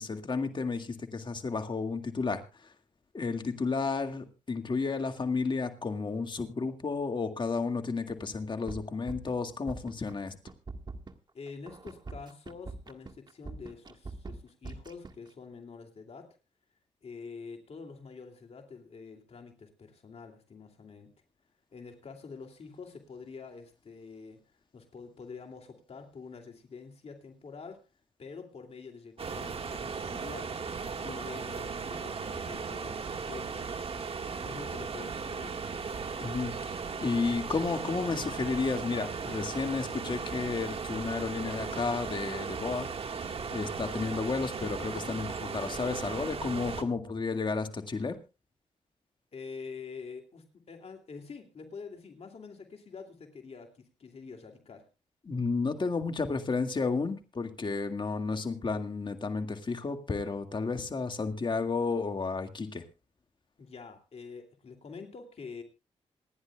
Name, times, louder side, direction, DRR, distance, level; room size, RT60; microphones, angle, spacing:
voice 1, 0.0-2.7 3.1-10.4 36.2-42.9 43.5-48.2 55.3-62.8, left 4 dB, 40° left, 6 dB, 2.0 m, -32 dB
sound 1, 8.1-8.2 8.5-9.4 9.7-10.2 10.5-15.3, right 3 dB, 35° right, 1.6 m, -43 dB
voice 2, 11.3-16.4 17.0-21.1 21.7-24.4 24.7-27.8 28.2-30.5 31.0-33.6 34.4-35.6 49.3-54.9 63.6-65.6, left 5 dB, 55° left, 4 dB, 2.6 m, -46 dB
sound 2, 29.2-46.8, right 5 dB, 50° right, 1.7 m, -37 dB
27.5 x 10.5 x 2.3 m, 0.30 s
cardioid pair, 70°, 12 cm